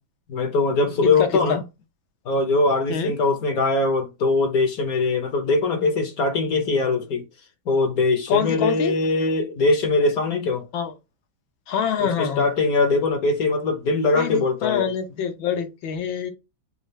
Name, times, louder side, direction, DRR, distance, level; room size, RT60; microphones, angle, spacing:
voice 1, 0.3-1.6 2.3-7.2 7.7-10.7 12.0-14.9, left 3 dB, 60° left, 1.1 m, -21 dB
voice 2, 1.0-1.6 2.9-3.1 8.3-8.9 10.7-10.9 11.7-12.5 14.1-16.3, left 7 dB, 80° left, 1.7 m, -25 dB
6.9 x 2.4 x 3.2 m
omnidirectional pair, 2.1 m